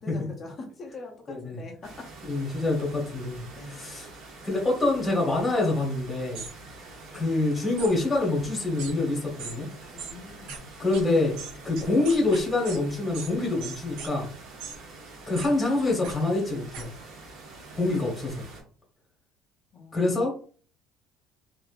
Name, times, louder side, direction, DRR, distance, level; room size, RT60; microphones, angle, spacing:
voice 1, 0.0-2.1 3.5-3.8 9.9-10.6 19.7-20.1, left 2 dB, 30° left, 2 dB, 0.6 m, -43 dB
voice 2, 1.3-1.6 2.3-4.1 4.4-6.4 7.1-9.7 10.8-11.4 11.6-14.3 15.3-16.9 17.8-18.4 19.9-20.3, left 2 dB, 10° left, -2 dB, 1.1 m, -26 dB
sound 1, 1.8-18.6, right 2 dB, 65° right, 1.2 m, -46 dB
sound 2, 6.4-6.5 7.8-7.9 8.8-8.9 9.4-9.6 10.0-10.1 10.5-10.6 10.9-11.0 11.4-12.8 13.1-13.3 13.6-14.1 14.6-14.8 15.4-15.5 16.0-16.1 16.7-16.8, right 6 dB, 85° right, 0.6 m, -38 dB
3.2 x 2.5 x 2.4 m, 0.42 s
cardioid pair, 165°, 0 cm